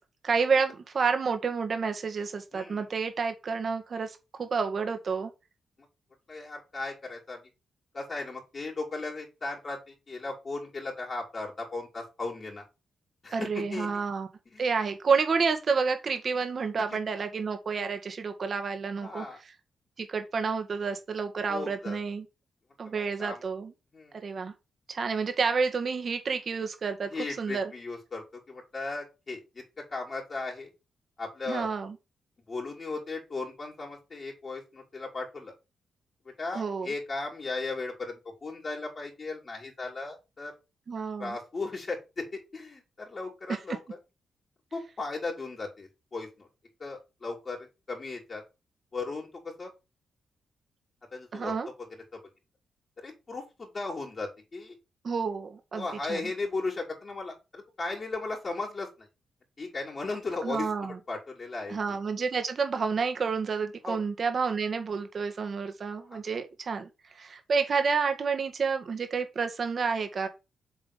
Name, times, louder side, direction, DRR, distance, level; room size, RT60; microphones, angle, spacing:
voice 1, 0.2-5.3 13.3-14.3 14.6-19.3 20.0-22.3 22.8-23.7 24.2-24.5 24.9-27.1 27.4-27.6 31.5-32.0 36.5-36.9 40.9-41.4 51.3-51.7 55.0-56.2 60.4-61.0 61.7-66.9 67.1-70.3, right 5 dB, 55° right, 1.8 m, -29 dB
voice 2, 2.5-2.9 6.3-7.4 7.9-12.6 13.2-13.9 14.5-14.7 19.0-19.4 21.5-22.0 22.8-23.4 23.9-24.2 27.1-30.7 31.2-31.7 32.5-35.5 36.4-40.5 41.2-44.0 44.7-46.5 46.8-48.4 48.9-49.7 51.1-51.9 52.1-52.2 53.0-54.8 55.7-59.1 59.6-62.0 63.8-64.0 66.0-66.2, left 3 dB, 45° left, 3.3 m, -36 dB
7.1 x 4.0 x 5.1 m
cardioid pair, 60°, 0 cm